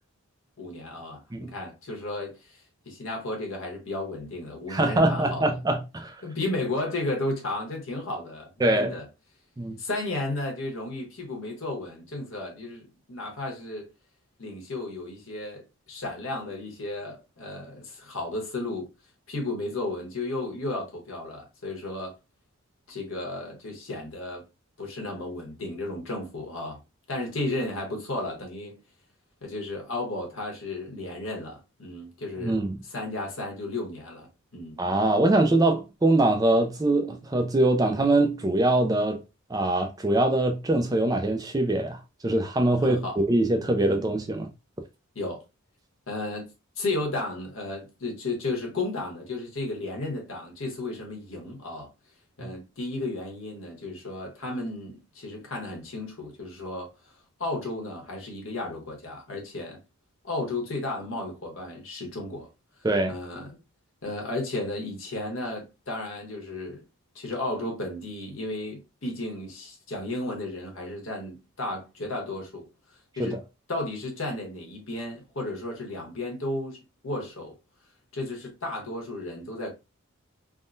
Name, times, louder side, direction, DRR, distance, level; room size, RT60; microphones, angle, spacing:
voice 1, 0.6-2.4 2.9-5.5 6.2-9.0 9.8-13.9 14.4-18.9 19.3-22.1 22.9-24.4 24.8-26.8 27.1-28.8 29.4-32.6 32.9-34.8 42.8-43.2 43.9-44.0 45.1-45.4 46.1-46.5 46.8-51.9 52.4-56.9 57.4-59.8 60.2-62.5 63.1-63.6 64.0-66.8 67.1-72.7 73.2-73.4 73.7-77.5 78.1-79.7, left 2 dB, 65° left, 1.1 m, -33 dB
voice 2, 4.7-6.2 8.6-8.9 9.6-9.8 32.4-32.8 34.8-39.2 39.5-44.5 52.4-52.5 62.8-63.1 73.2-73.4, right 2 dB, 15° right, 0.4 m, -23 dB
3.6 x 2.1 x 2.5 m
head